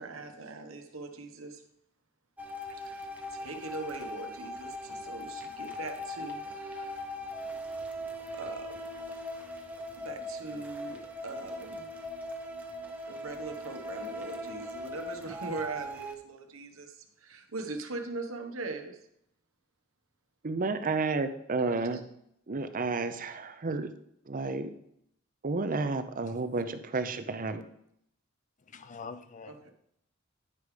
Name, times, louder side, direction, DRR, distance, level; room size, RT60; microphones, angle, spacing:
voice 1, 0.0-1.6 2.7-7.0 8.3-8.8 10.0-11.9 13.1-19.0 21.6-21.7 29.4-29.7, right 3 dB, 85° right, 1.2 m, -41 dB
sound 1, 2.4-16.1, left 1 dB, 10° right, 0.9 m, -40 dB
voice 2, 20.4-22.0 22.5-23.9 24.3-24.7 25.4-27.6, right 3 dB, 40° right, 0.7 m, -31 dB
voice 3, 28.7-29.7, left 4 dB, 40° left, 0.5 m, -44 dB
9.9 x 5.0 x 5.0 m
head